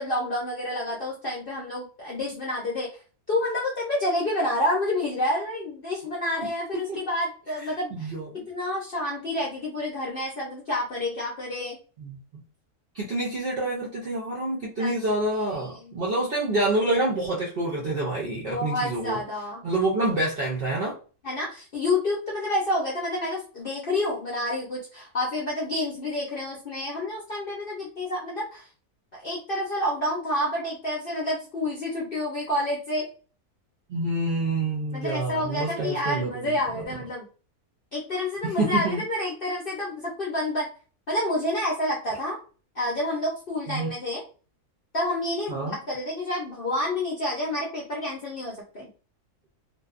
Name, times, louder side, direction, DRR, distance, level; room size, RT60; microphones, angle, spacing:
voice 1, 0.0-2.9 3.3-8.1 8.5-11.8 14.8-14.9 15.3-16.0 18.5-19.6 21.2-28.7 29.1-33.1 34.9-37.3 37.9-40.7 41.1-42.4 42.8-44.2 44.9-48.9, left 1 dB, 60° left, -3 dB, 0.6 m, -29 dB
voice 2, 7.9-8.4 12.0-12.4 12.9-19.2 19.6-21.0 33.9-36.8 38.4-39.0 43.7-43.9 45.5-45.8, right 2 dB, 65° right, -4 dB, 0.5 m, -27 dB
2.6 x 2.2 x 2.4 m, 0.37 s
omnidirectional pair, 1.7 m